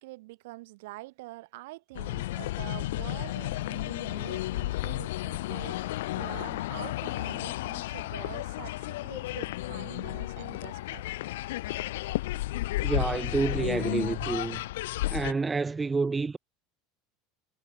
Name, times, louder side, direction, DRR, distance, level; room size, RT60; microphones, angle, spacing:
voice 1, 0.0-11.1, right 21 dB, 80° right, 5.4 m, -45 dB
sound 1, 1.9-15.3, left 17 dB, 90° left, 0.9 m, -33 dB
voice 2, 12.8-14.6 15.1-16.4, right 4 dB, 15° right, 0.9 m, -28 dB
supercardioid pair, 135°, 0 cm